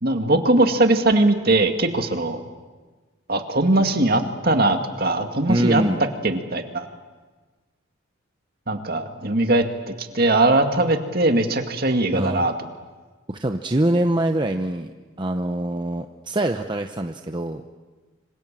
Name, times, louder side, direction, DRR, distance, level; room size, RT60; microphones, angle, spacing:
voice 1, 0.0-2.4 3.3-5.8 6.2-6.9 8.7-12.5, right 2 dB, 45° right, 5 dB, 2.1 m, -20 dB
voice 2, 5.5-6.0 12.1-12.5 13.3-14.9 15.2-17.6, right 1 dB, 20° right, 5 dB, 0.8 m, -24 dB
26.0 x 26.0 x 7.6 m, 1.3 s
head